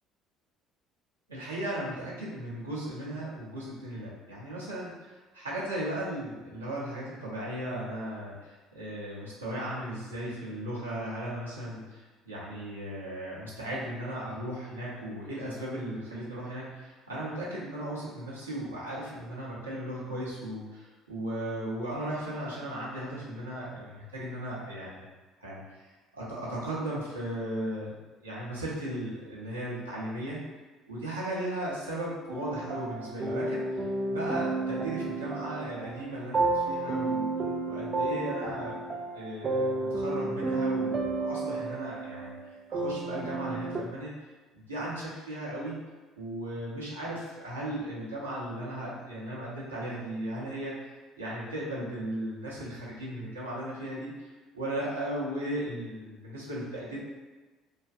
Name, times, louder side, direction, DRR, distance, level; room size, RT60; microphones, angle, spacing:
voice 1, 1.3-25.1 25.4-25.8 26.1-27.9 28.2-30.4 30.9-33.8 34.1-37.3 37.6-38.8 39.1-42.4 42.7-44.1 44.5-45.8 46.2-54.3 54.5-57.0, right 1 dB, 85° right, -7 dB, 0.5 m, -36 dB
sound 1, 32.3-43.8, right 3 dB, 35° right, 0.3 m, -31 dB
2.5 x 2.3 x 2.3 m, 1.2 s
figure-of-eight pair, 55°, 0 cm